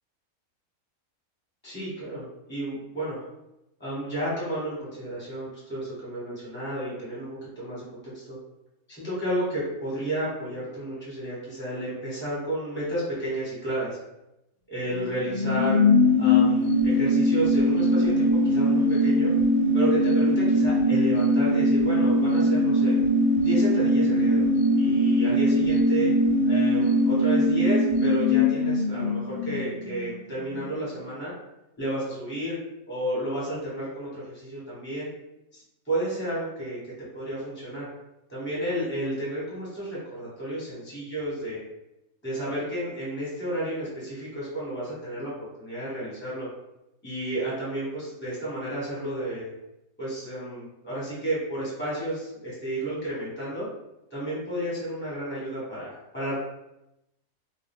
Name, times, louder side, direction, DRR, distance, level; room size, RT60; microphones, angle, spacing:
voice 1, 1.6-3.2 3.8-8.4 8.9-14.0 14.7-15.8 16.2-19.3 19.7-23.0 23.4-24.4 24.8-26.1 26.4-31.3 31.8-32.6 32.9-35.1 35.5-36.8 37.1-37.9 38.3-41.6 42.2-46.5 47.0-49.5 50.0-53.7 54.1-56.4, right 1 dB, 10° left, -7 dB, 1.1 m, -32 dB
sound 1, 15.0-30.2 30.5-30.6, left 1 dB, 70° left, 1.0 m, -21 dB
2.6 x 2.2 x 3.5 m, 0.89 s
omnidirectional pair, 1.5 m